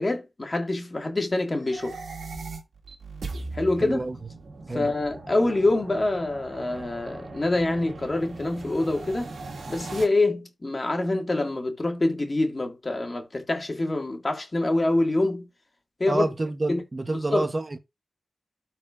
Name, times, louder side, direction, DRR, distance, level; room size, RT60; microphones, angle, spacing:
voice 1, 0.0-2.0 3.5-4.1 4.7-9.3 9.7-15.5 16.0-16.3 16.7-16.8 17.3-17.5, left 2 dB, 35° left, 1.8 m, -25 dB
sound 1, 1.5-10.0, right 3 dB, 85° right, 1.7 m, -39 dB
voice 2, 3.8-4.2 4.7-4.9 16.1-17.8, right 2 dB, 35° right, 0.8 m, -28 dB
13.0 x 4.5 x 2.4 m
cardioid pair, 60°, 0 cm